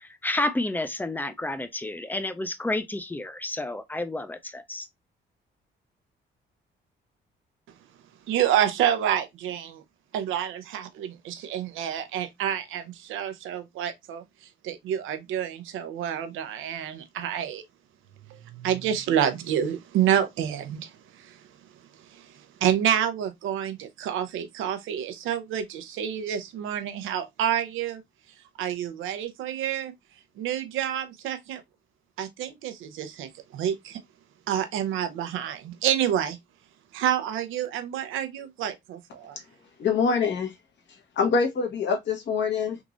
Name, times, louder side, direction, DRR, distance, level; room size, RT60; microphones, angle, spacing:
voice 1, 0.0-4.9, left 2 dB, 10° left, 0.5 m, -30 dB
voice 2, 8.3-9.8 10.1-17.6 18.3-21.5 22.0-28.0 28.6-29.9 30.4-31.6 32.2-34.0 34.5-36.4 36.9-39.4, right 10 dB, 85° right, 0.7 m, -28 dB
voice 3, 39.8-40.5 41.2-42.8, left 5 dB, 65° left, 1.2 m, -24 dB
3.6 x 3.0 x 2.5 m
cardioid pair, 90°, 20 cm